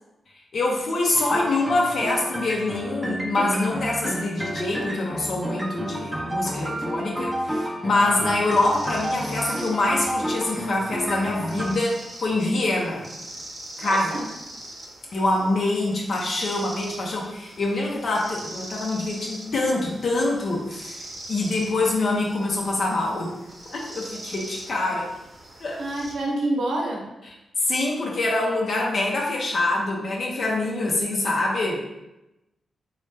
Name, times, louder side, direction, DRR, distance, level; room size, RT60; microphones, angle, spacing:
voice 1, 0.5-13.1 13.8-14.1 15.1-21.0 21.3-23.3 23.7-25.1 25.6-25.8 27.2-31.8, left 2 dB, 60° left, -2 dB, 0.6 m, -25 dB
sound 1, 1.1-11.7, right 1 dB, 10° right, 0.5 m, -31 dB
sound 2, 8.2-26.1, right 1 dB, 45° right, 0.8 m, -42 dB
voice 2, 13.8-14.3 25.8-27.0, right 1 dB, 85° right, -2 dB, 0.8 m, -27 dB
3.1 x 2.3 x 3.2 m, 0.93 s
cardioid pair, 80°, 0 cm